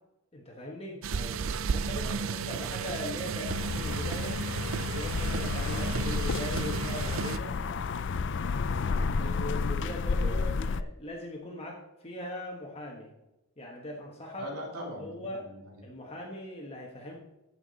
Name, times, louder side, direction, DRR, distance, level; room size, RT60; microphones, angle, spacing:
voice 1, 0.3-1.0 1.7-4.4 4.9-7.6 9.2-13.1 13.6-14.5 15.0-15.4 15.8-17.2, left 1 dB, 25° left, -1 dB, 1.3 m, -40 dB
sound 1, 1.0-7.4, right 6 dB, 60° right, 0.4 m, -33 dB
voice 2, 1.1-1.5 1.9-2.3 10.0-10.5 14.4-15.8, equal, 90° right, -1 dB, 2.7 m, -43 dB
sound 2, 3.5-10.8, left 4 dB, 55° left, 0.4 m, -31 dB
14.5 x 6.0 x 4.1 m, 0.93 s
head